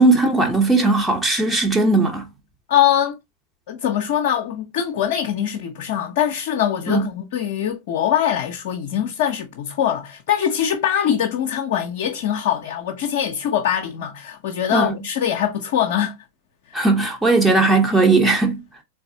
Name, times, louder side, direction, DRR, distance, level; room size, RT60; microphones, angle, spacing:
voice 1, 0.0-2.2 6.9-7.0 14.7-14.9 16.7-18.6, right 3 dB, 10° right, 0.8 m, -17 dB
voice 2, 2.7-3.2 3.7-16.2 16.7-16.9 17.8-18.0, left 10 dB, 55° left, 0.6 m, -22 dB
3.9 x 3.5 x 2.7 m
figure-of-eight pair, 90°, 0 cm